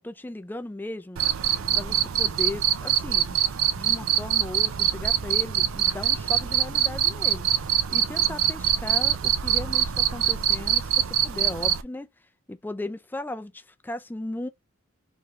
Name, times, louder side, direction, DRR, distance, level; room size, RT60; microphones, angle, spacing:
voice 1, 0.0-1.2 1.7-3.5 3.7-12.1 12.5-14.5, left 1 dB, 10° left, 0.4 m, -36 dB
Cricket, 1.2-11.8, right 10 dB, 80° right, 0.5 m, -24 dB
3.6 x 3.3 x 2.9 m
head